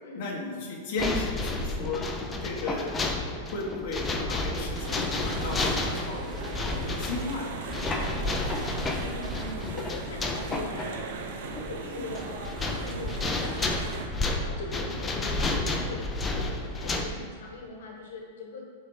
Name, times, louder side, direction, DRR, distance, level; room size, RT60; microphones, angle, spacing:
voice 1, 0.2-2.1 2.4-2.9 3.5-8.4 11.8-12.0, left 3 dB, 35° left, -3 dB, 1.5 m, -36 dB
sound 1, 1.0-17.1, left 2 dB, 10° left, 0.5 m, -31 dB
sound 2, 4.7-14.1, right 5 dB, 55° right, 0.8 m, -39 dB
voice 2, 9.0-11.1 11.4-18.7, left 3 dB, 70° left, 1 dB, 1.4 m, -42 dB
10.0 x 4.0 x 4.9 m, 2.3 s
supercardioid pair, 180°, 0 cm